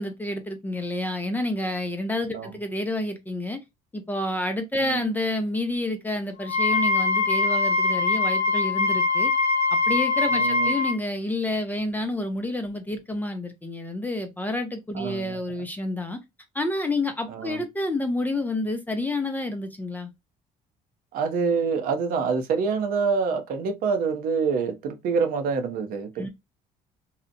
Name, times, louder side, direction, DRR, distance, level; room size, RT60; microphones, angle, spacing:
voice 1, 0.0-3.6 3.9-9.3 9.7-16.2 16.5-20.1 26.2-26.3, left 1 dB, 10° left, 0.5 m, -29 dB
voice 2, 4.8-5.1 10.3-10.7 14.9-15.4 17.3-17.6 21.1-26.3, right 5 dB, 70° right, 0.7 m, -26 dB
Wind instrument woodwind instrument, 6.4-11.0, left 3 dB, 45° left, 0.9 m, -22 dB
2.7 x 2.1 x 2.5 m
supercardioid pair, 85°, 15 cm